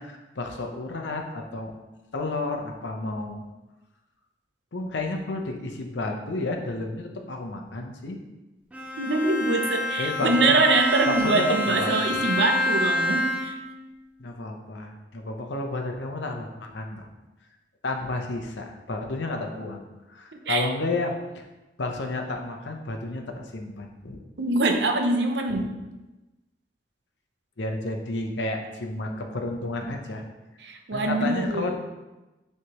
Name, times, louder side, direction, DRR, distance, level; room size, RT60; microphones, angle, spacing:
voice 1, 0.0-1.7 2.1-3.5 4.7-8.2 10.0-10.5 11.1-12.2 14.2-17.1 17.8-21.4 21.8-24.2 25.5-25.7 27.6-30.2 30.9-31.8, left 2 dB, 85° left, 3 dB, 0.8 m, -31 dB
Bowed string instrument, 8.7-13.8, left 1 dB, 10° right, 0.6 m, -27 dB
voice 2, 9.0-13.6 20.5-20.6 24.4-25.7 30.6-31.8, right 2 dB, 75° right, 4 dB, 0.7 m, -24 dB
9.4 x 3.3 x 3.0 m, 1.1 s
head